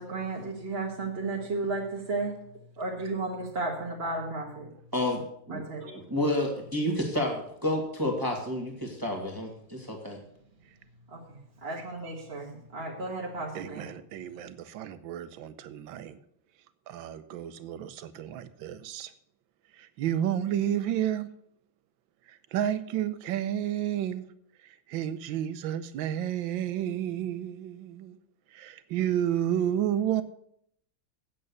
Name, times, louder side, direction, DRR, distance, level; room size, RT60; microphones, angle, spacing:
voice 1, 0.0-2.4 2.8-4.7 5.5-6.0 11.1-13.9, right 3 dB, 35° right, 1.5 m, -34 dB
voice 2, 4.9-5.6 6.1-10.2, left 1 dB, 10° right, 1.6 m, -30 dB
voice 3, 13.5-16.1 16.9-19.1 19.8-21.3 22.3-24.2 24.6-28.2 28.5-30.2, right 10 dB, 85° right, 1.5 m, -31 dB
8.7 x 7.6 x 6.7 m
omnidirectional pair, 2.1 m